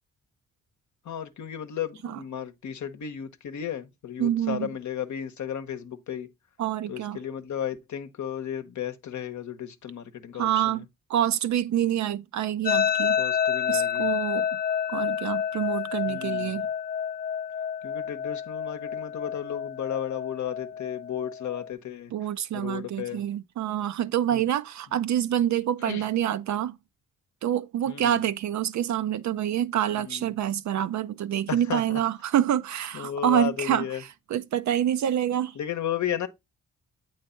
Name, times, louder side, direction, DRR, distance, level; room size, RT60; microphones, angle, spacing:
voice 1, 1.0-6.3 6.9-10.8 13.2-14.1 16.1-16.6 17.8-22.1 22.5-23.2 24.3-24.5 25.8-26.1 27.9-28.2 30.0-30.3 31.5-32.0 32.9-34.0 35.6-36.3, left 9 dB, 65° left, 0.8 m, -34 dB
voice 2, 4.2-4.7 6.6-7.2 10.4-10.8 11.1-13.2 13.7-14.5 14.9-16.7 22.1-26.8 27.4-35.6, right 10 dB, 60° right, 0.5 m, -27 dB
sound 1, 12.7-21.7, left 8 dB, 30° left, 0.4 m, -29 dB
8.0 x 3.2 x 4.2 m
cardioid pair, 65°, 32 cm